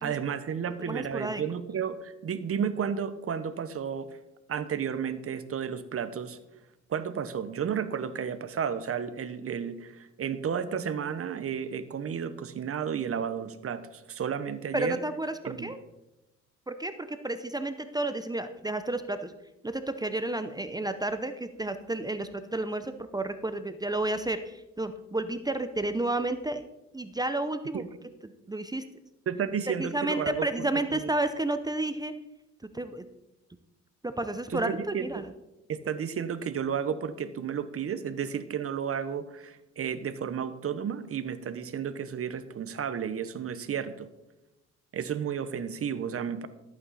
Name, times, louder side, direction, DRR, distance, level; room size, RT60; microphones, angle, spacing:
voice 1, 0.0-4.2 4.5-6.4 6.9-15.0 15.4-15.7 27.7-27.9 29.3-31.0 34.5-35.2 35.7-44.1 44.9-46.5, right 7 dB, 50° right, 12 dB, 1.0 m, -32 dB
voice 2, 0.9-1.4 14.7-15.8 16.7-19.3 19.6-26.6 26.9-27.8 28.2-28.8 29.8-32.1 32.7-33.0 34.0-35.2, right 2 dB, 15° right, 9 dB, 0.7 m, -31 dB
14.0 x 8.8 x 4.1 m, 0.95 s
cardioid pair, 90°, 30 cm